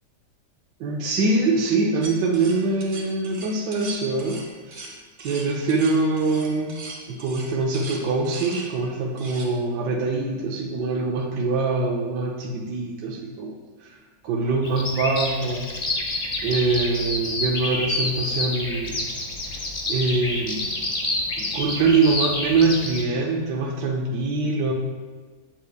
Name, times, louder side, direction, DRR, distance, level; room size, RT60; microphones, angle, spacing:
voice 1, 0.8-4.9 5.2-13.9 14.2-15.7 16.4-19.0 19.4-19.6 19.9-20.7 21.4-24.7, right 3 dB, 80° right, -1 dB, 1.3 m, -24 dB
sound 1, 2.0-8.7 9.2-9.4, right 3 dB, 45° right, 1.4 m, -39 dB
Bird vocalization bird call bird song, 14.6-23.0, left 2 dB, 35° left, 0.8 m, -28 dB
8.1 x 7.7 x 2.2 m, 1.4 s
omnidirectional pair, 1.8 m